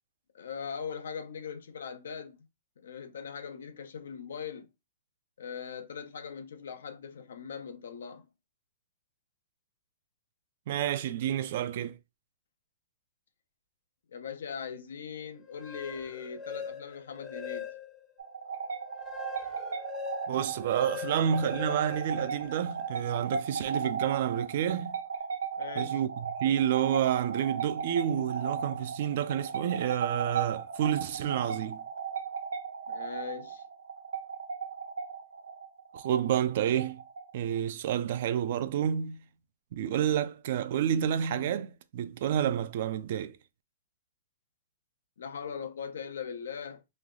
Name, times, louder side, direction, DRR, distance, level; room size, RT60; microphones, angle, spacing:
voice 1, 0.3-2.4 2.8-4.7 5.4-8.3 14.1-17.7 25.6-26.0 32.9-33.6 45.2-46.8, left 6 dB, 85° left, 0.6 m, -40 dB
voice 2, 10.7-12.0 20.3-24.9 25.8-31.8 35.9-37.0 37.3-39.2 39.7-43.4, right 10 dB, 50° right, 0.4 m, -29 dB
sound 1, 15.4-18.1 18.6-22.9, left 7 dB, 15° left, 0.4 m, -42 dB
sound 2, 18.2-37.6, right 6 dB, 85° right, 0.7 m, -36 dB
3.2 x 2.3 x 3.7 m
hypercardioid pair, 160°, 0 cm